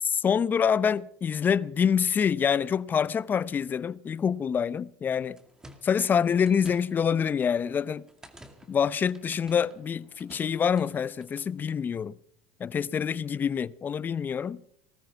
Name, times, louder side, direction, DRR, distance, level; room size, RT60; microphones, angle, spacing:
voice 1, 0.0-5.4 5.8-8.1 8.7-12.2 12.6-14.6, left 7 dB, 30° left, 0.6 m, -26 dB
sound 1, 5.4-11.5, right 1 dB, 10° right, 2.3 m, -53 dB
19.0 x 13.0 x 5.8 m
supercardioid pair, 100°, 7 cm